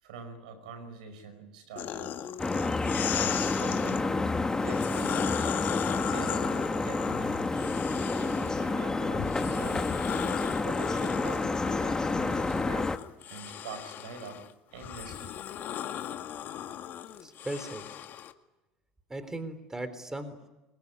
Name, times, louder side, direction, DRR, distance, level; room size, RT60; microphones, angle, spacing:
voice 1, 0.0-2.2 3.2-4.1 4.6-5.6 6.1-7.8 8.1-9.9 10.4-12.9 13.3-14.5 14.7-15.4, right 4 dB, 85° right, 10 dB, 5.3 m, -44 dB
sound 1, 1.8-4.0 4.6-8.7 9.2-18.3, left 10 dB, 50° left, 1.9 m, -38 dB
sound 2, 2.4-13.0, left 3 dB, 15° left, 1.6 m, -29 dB
voice 2, 17.2-17.8 19.1-20.5, right 2 dB, 15° right, 11 dB, 3.8 m, -37 dB
24.5 x 22.0 x 9.8 m, 1.0 s
hypercardioid pair, 80°, 4 cm